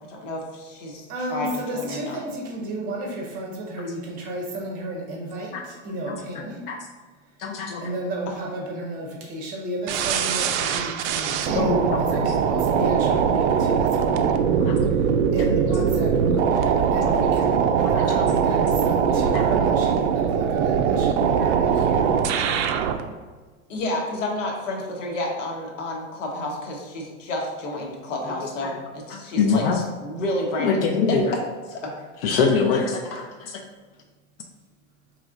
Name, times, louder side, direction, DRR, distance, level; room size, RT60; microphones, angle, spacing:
voice 1, 0.1-2.2 8.3-8.4 23.7-30.8 31.7-31.8, left 1 dB, 90° left, 0 dB, 1.1 m, -30 dB
voice 2, 1.1-6.6 7.8-14.4 14.9-22.1, right 1 dB, 25° right, 0 dB, 0.6 m, -33 dB
voice 3, 6.1-6.8 7.4-7.9 11.5-12.3 14.6-14.8 16.8-17.2 17.9-18.0 19.3-19.4 28.4-28.7 29.1-29.8 30.6-31.3 32.2-33.6, left 5 dB, 50° left, 1 dB, 0.5 m, -25 dB
sound 1, 9.9-23.0, right 7 dB, 70° right, 0.5 m, -21 dB
4.8 x 3.1 x 2.5 m, 1.4 s
supercardioid pair, 160°, 36 cm